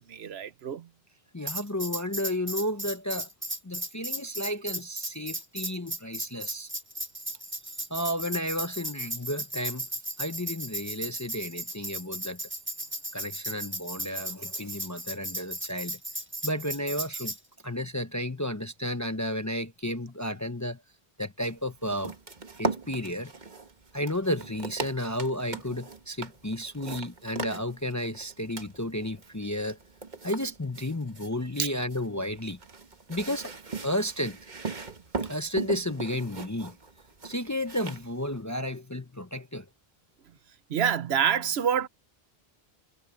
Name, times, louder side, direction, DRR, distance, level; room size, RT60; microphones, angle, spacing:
voice 1, 0.1-0.9 31.6-31.7 40.7-41.9, right 8 dB, 80° right, 1.1 m, -26 dB
voice 2, 1.3-3.3 3.6-6.7 7.9-9.9 10.2-12.4 13.1-16.0 16.4-17.3 17.6-20.8 21.2-22.1 22.6-23.3 23.9-29.8 30.2-32.6 33.1-33.5 33.8-34.4 35.2-36.8 37.2-39.7, left 1 dB, 20° left, 0.8 m, -32 dB
Tambourine, 1.5-17.4, right 1 dB, 10° right, 1.4 m, -36 dB
sound 1, 21.4-38.4, right 4 dB, 45° right, 1.5 m, -39 dB
omnidirectional pair, 1.0 m